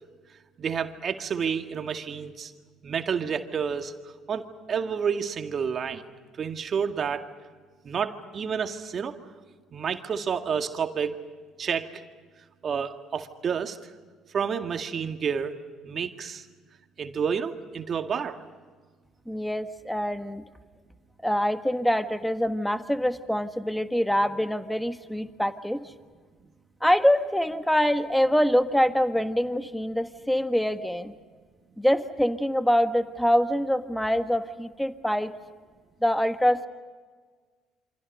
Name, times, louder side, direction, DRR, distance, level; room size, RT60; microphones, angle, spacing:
voice 1, 0.6-2.5 2.8-3.9 4.3-6.0 6.4-7.3 7.8-9.1 9.7-11.2 11.6-12.0 12.6-13.8 14.3-15.5 15.8-16.4 17.0-18.4, right 7 dB, 45° right, 6 dB, 1.9 m, -29 dB
voice 2, 19.3-20.4 21.2-25.8 26.8-31.1 31.8-35.3 36.0-36.7, equal, 5° left, 9 dB, 1.5 m, -25 dB
28.0 x 26.0 x 5.5 m, 1.5 s
hypercardioid pair, 60°, 0 cm